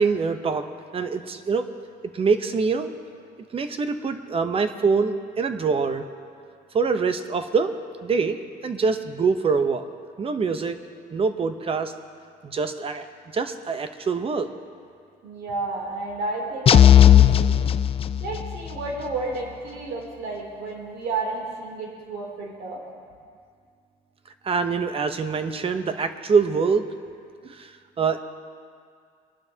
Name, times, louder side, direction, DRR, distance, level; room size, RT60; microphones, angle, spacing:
voice 1, 0.0-1.7 2.1-2.9 3.5-6.1 6.7-7.7 8.0-8.4 8.6-9.8 10.2-10.8 11.1-11.9 12.4-13.0 13.3-14.5 24.4-26.8 27.4-28.2, right 5 dB, 35° right, 9 dB, 0.8 m, -24 dB
voice 2, 15.2-17.7 18.2-22.8, right 3 dB, 75° right, -1 dB, 3.1 m, -31 dB
sound 1, 16.7-18.6, left 10 dB, 35° left, 0.4 m, -15 dB
23.5 x 11.5 x 2.8 m, 2.2 s
cardioid pair, 110°, 17 cm